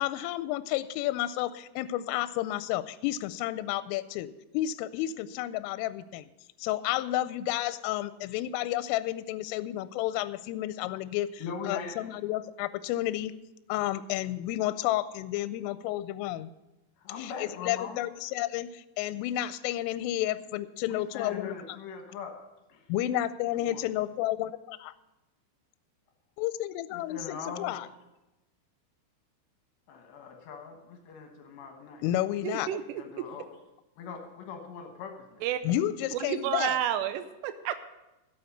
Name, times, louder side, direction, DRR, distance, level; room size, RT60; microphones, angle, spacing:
voice 1, 0.0-6.3 6.6-13.3 13.7-16.5 17.2-21.6 22.9-24.9 26.4-27.9 32.0-32.7 35.6-36.8, left 14 dB, 85° left, 14 dB, 3.1 m, -31 dB
voice 2, 11.4-12.1 17.0-18.0 20.9-22.4 22.7-22.9 23.6-23.8 26.9-27.8 29.9-32.0 33.0-33.5 34.0-35.4, left 5 dB, 70° left, 3 dB, 3.1 m, -41 dB
voice 3, 32.4-32.8 35.4-35.6 36.1-37.9, right 11 dB, 85° right, 10 dB, 2.4 m, -30 dB
12.0 x 8.4 x 6.4 m, 0.98 s
omnidirectional pair, 5.8 m